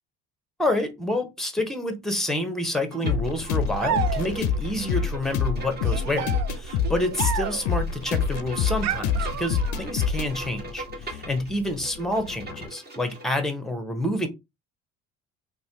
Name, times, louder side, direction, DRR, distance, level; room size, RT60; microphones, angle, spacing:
voice 1, 0.6-14.3, left 1 dB, ahead, 0.8 m, -28 dB
Bowed string instrument, 2.9-13.4, right 2 dB, 25° right, 1.4 m, -41 dB
sound 1, 3.0-12.7, left 6 dB, 65° left, 0.5 m, -27 dB
sound 2, 3.8-4.6 5.8-7.8 8.8-9.9, right 10 dB, 50° right, 0.4 m, -31 dB
3.1 x 2.2 x 2.8 m
hypercardioid pair, 60°, 37 cm